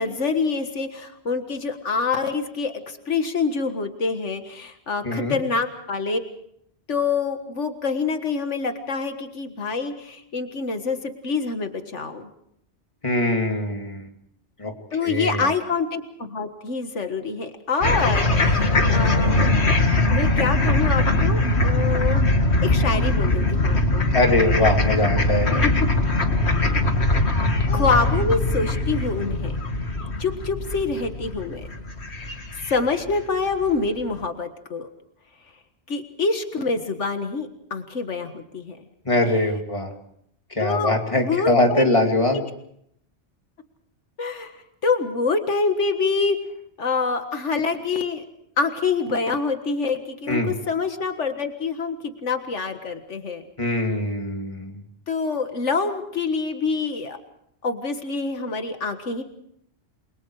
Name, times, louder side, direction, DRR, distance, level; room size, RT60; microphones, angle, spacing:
voice 1, 0.0-6.2 6.9-12.3 14.9-19.6 20.1-22.3 22.6-24.1 25.6-25.7 27.7-29.6 30.2-31.7 32.6-34.9 35.9-38.8 40.6-41.9 44.2-46.4 46.8-48.2 48.6-53.4 55.1-57.2 57.6-59.2, left 4 dB, 85° left, 7 dB, 2.0 m, -26 dB
voice 2, 5.0-5.4 13.0-14.0 14.6-14.7 15.0-15.5 24.1-25.6 39.0-39.9 40.5-42.4 50.3-50.5 53.6-54.8, left 2 dB, 25° left, 2 dB, 3.0 m, -22 dB
sound 1, 17.8-33.2, left 2 dB, 65° left, 2.3 m, -21 dB
29.5 x 23.0 x 4.9 m, 0.72 s
omnidirectional pair, 1.2 m